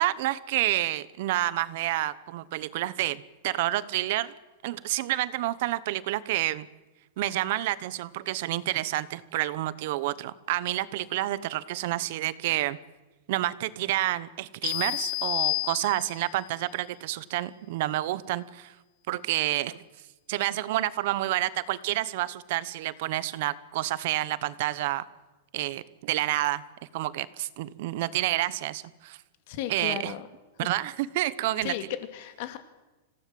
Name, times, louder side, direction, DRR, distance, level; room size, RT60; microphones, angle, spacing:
voice 1, 0.0-4.3 4.6-6.7 7.2-12.8 13.3-18.7 19.1-19.8 20.3-25.0 25.5-26.6 26.9-29.2 29.7-30.1 30.6-31.7, right 15 dB, 50° right, 17 dB, 1.0 m, -29 dB
sound 1, 14.6-16.4, left 22 dB, 35° left, 0.8 m, -30 dB
voice 2, 29.5-30.3 31.6-32.6, left 11 dB, 50° left, 9 dB, 2.4 m, -35 dB
26.5 x 16.5 x 7.8 m, 1.1 s
supercardioid pair, 165°, 0 cm